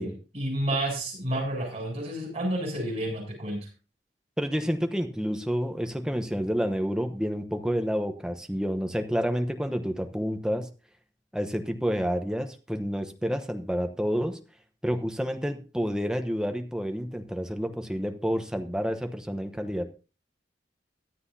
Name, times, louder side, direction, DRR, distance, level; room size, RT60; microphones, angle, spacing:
voice 1, 0.0-3.6, right 1 dB, 35° right, -2 dB, 7.9 m, -30 dB
voice 2, 4.4-10.7 11.3-14.4 14.8-19.8, equal, 5° right, 6 dB, 1.0 m, -29 dB
24.0 x 8.0 x 2.8 m, 0.34 s
head